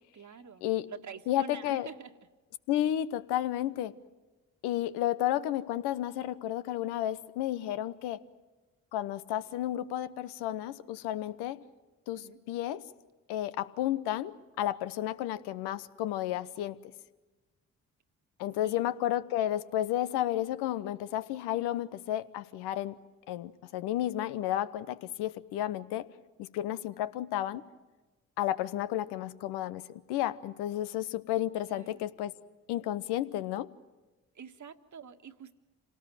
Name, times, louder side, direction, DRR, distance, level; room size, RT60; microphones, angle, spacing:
voice 1, 0.1-2.1 12.1-12.4 18.6-18.8 31.7-32.0 34.3-35.5, right 7 dB, 45° right, 7 dB, 1.7 m, -47 dB
voice 2, 1.3-1.9 2.7-4.0 4.6-8.2 8.9-11.6 12.1-12.8 13.3-16.8 18.4-23.0 23.3-26.1 26.4-27.6 28.4-32.3 32.7-33.7, left 13 dB, 75° left, 14 dB, 1.0 m, -32 dB
27.0 x 18.5 x 9.1 m, 1.2 s
hypercardioid pair, 45°, 39 cm